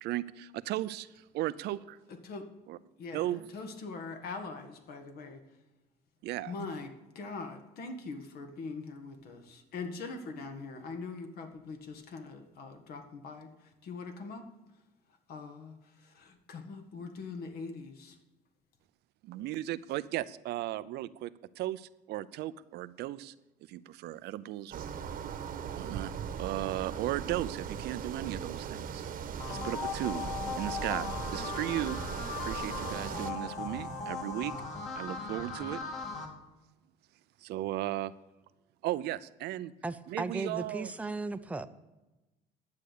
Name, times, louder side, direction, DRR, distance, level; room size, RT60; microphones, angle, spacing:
voice 1, 0.0-2.0 2.7-2.8 3.1-3.5 6.2-6.5 19.2-23.3 23.7-24.9 25.7-26.1 26.4-29.0 29.5-30.2 30.6-32.0 32.4-34.5 35.0-35.8 37.4-38.1 38.8-39.7 40.1-40.9, right 14 dB, 75° right, 16 dB, 0.6 m, -36 dB
voice 2, 3.0-5.4 6.5-13.5 13.8-14.5 15.3-18.2, left 4 dB, 65° left, 6 dB, 1.8 m, -42 dB
sound 1, 24.7-33.3, right 7 dB, 55° right, 1.2 m, -39 dB
sound 2, 29.4-36.3, left 4 dB, 45° left, 2.4 m, -38 dB
voice 3, 39.8-41.7, right 3 dB, 10° right, 9 dB, 0.6 m, -36 dB
11.5 x 8.2 x 6.8 m, 1.1 s
cardioid pair, 110°, 17 cm